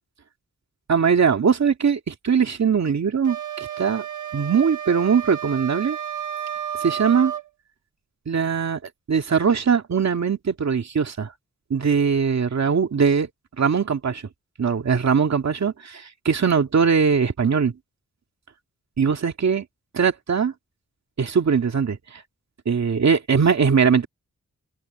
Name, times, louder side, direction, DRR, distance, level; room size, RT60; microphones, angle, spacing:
voice 1, 0.9-4.1 4.3-6.0 6.8-7.3 8.3-8.8 9.1-11.3 11.7-13.3 13.6-14.2 14.6-17.7 19.0-19.6 19.9-20.5 21.2-22.2 22.7-24.1, right 6 dB, 60° right, 2.2 m, -21 dB
sound 1, 3.2-7.5, right 9 dB, 80° right, 1.2 m, -31 dB
open air
cardioid pair, 75°, 31 cm